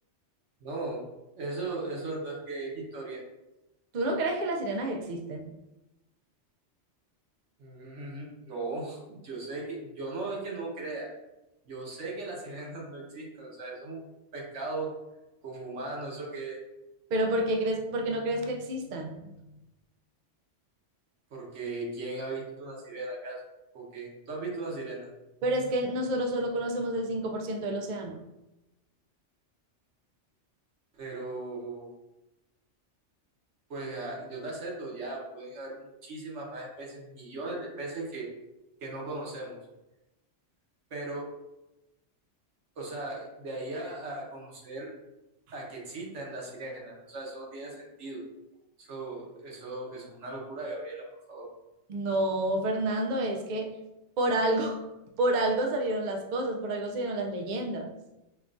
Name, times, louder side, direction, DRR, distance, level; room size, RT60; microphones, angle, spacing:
voice 1, 0.6-1.1 1.3-3.2 7.6-11.1 11.6-14.1 14.3-14.9 15.4-16.6 21.3-23.4 23.7-25.1 30.9-31.9 33.7-38.3 38.8-39.6 40.9-41.3 42.8-44.9 45.5-48.2 48.8-51.5, right 2 dB, 75° right, -2 dB, 1.3 m, -38 dB
voice 2, 3.9-5.5 17.1-19.4 25.4-28.3 51.9-53.7 54.2-54.8 55.2-57.9, right 1 dB, 55° right, 2 dB, 0.5 m, -29 dB
5.6 x 2.3 x 2.5 m, 0.96 s
omnidirectional pair, 1.2 m